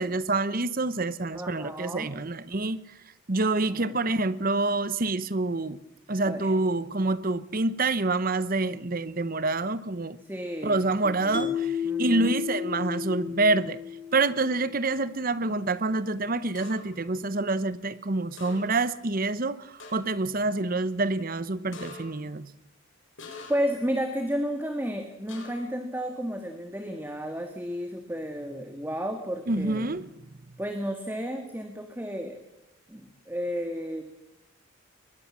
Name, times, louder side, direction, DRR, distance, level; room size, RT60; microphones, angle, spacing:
voice 1, 0.0-2.8 3.3-5.8 6.1-10.2 10.6-11.7 12.0-13.8 14.1-22.5 29.5-30.1, right 2 dB, 40° right, 16 dB, 0.9 m, -27 dB
voice 2, 1.3-2.1 3.7-4.0 6.2-6.5 10.2-11.6 11.8-12.4 23.5-29.9 30.6-32.4 32.9-34.0, equal, 10° right, 5 dB, 1.7 m, -32 dB
Mallet percussion, 11.3-14.6, left 8 dB, 35° left, 2.2 m, -32 dB
sound 1, 16.5-17.0 18.4-18.9 19.3-19.4 19.8-20.2 21.7-22.3 23.2-23.9 25.3-25.8, left 2 dB, 60° left, 6.5 m, -45 dB
22.0 x 21.0 x 7.4 m, 0.89 s
head